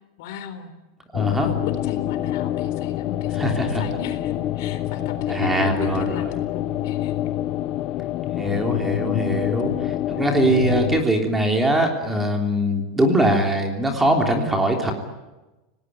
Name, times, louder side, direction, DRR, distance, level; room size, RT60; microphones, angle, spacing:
voice 1, 0.2-0.7 1.4-7.1 8.5-8.6 8.9-9.4, left 7 dB, 55° left, 9 dB, 4.0 m, -36 dB
sound 1, 1.1-11.0, left 13 dB, 35° left, 0.9 m, -26 dB
voice 2, 1.1-1.5 3.3-3.8 5.3-6.1 8.4-14.9, right 1 dB, 5° right, 3 dB, 3.3 m, -22 dB
29.5 x 19.0 x 9.4 m, 1.1 s
supercardioid pair, 170°, 2 cm